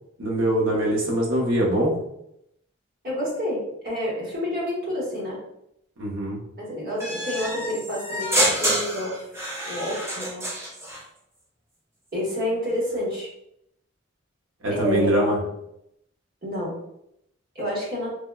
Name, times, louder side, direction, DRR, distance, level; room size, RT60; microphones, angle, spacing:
voice 1, 0.2-1.9 6.0-6.4 14.6-15.4, right 1 dB, 70° right, -4 dB, 0.8 m, -23 dB
voice 2, 3.0-5.4 6.6-9.2 9.6-10.7 12.1-13.3 14.7-15.5 16.4-16.8 17.5-18.1, equal, 45° right, -5 dB, 1.0 m, -29 dB
sound 1, 7.0-11.0, equal, 10° right, 0.5 m, -27 dB
3.4 x 2.1 x 2.2 m, 0.78 s
head